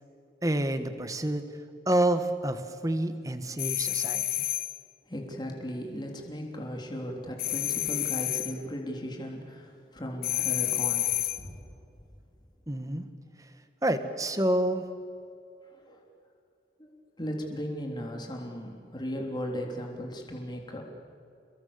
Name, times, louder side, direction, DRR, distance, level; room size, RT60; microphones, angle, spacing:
voice 1, 0.4-1.4 1.9-4.5 12.7-13.0 13.8-14.8, right 1 dB, 20° right, 9 dB, 1.4 m, -28 dB
sound 1, 3.6-4.8 7.4-8.6 10.2-11.5, left 14 dB, 55° left, 0.8 m, -29 dB
voice 2, 5.0-11.7 15.6-16.1 16.8-16.9 17.2-20.8, equal, 25° left, 1 dB, 3.5 m, -37 dB
29.0 x 22.0 x 6.9 m, 2.5 s
head